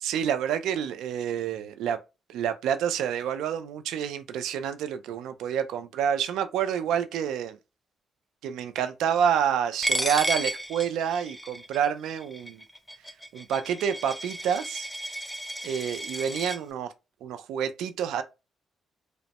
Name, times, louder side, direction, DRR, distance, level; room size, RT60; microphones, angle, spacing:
voice 1, 0.0-2.0 2.3-7.6 8.4-12.6 13.3-14.9 15.6-16.9 17.2-18.2, right 8 dB, 85° right, 0.4 m, -28 dB
Coin (dropping), 9.8-16.6, equal, ahead, 0.4 m, -33 dB
3.0 x 2.0 x 2.8 m
cardioid pair, 90°, 0 cm